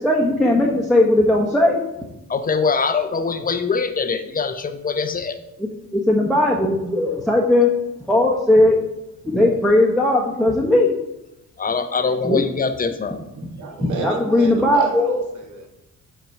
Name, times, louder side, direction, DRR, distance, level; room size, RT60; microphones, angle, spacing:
voice 1, 0.0-1.8 5.6-7.7 8.1-8.8 9.2-10.9 12.2-12.4 13.4-13.5 14.0-15.2, left 1 dB, ahead, -4 dB, 1.2 m, -18 dB
voice 2, 2.3-5.4 11.6-13.2, left 5 dB, 30° left, 8 dB, 0.8 m, -23 dB
voice 3, 13.3-15.7, right 4 dB, 75° right, 3 dB, 1.4 m, -32 dB
8.0 x 4.4 x 4.6 m, 0.90 s
cardioid pair, 90°, 30 cm